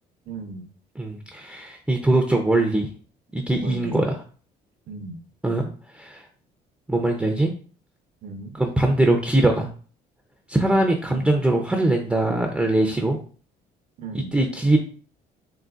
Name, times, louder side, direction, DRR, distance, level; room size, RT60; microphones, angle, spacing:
voice 1, 0.3-0.7 3.6-4.0 4.9-5.2 8.2-8.6 11.1-11.4 14.0-14.3, right 3 dB, 55° right, 6 dB, 0.6 m, -36 dB
voice 2, 1.0-2.9 3.3-4.2 5.4-5.7 5.9-6.2 6.9-7.5 8.5-9.7 10.5-13.2 14.1-14.8, right 2 dB, 5° right, 3 dB, 0.5 m, -21 dB
3.9 x 3.8 x 2.4 m, 0.41 s
cardioid pair, 110°, 17 cm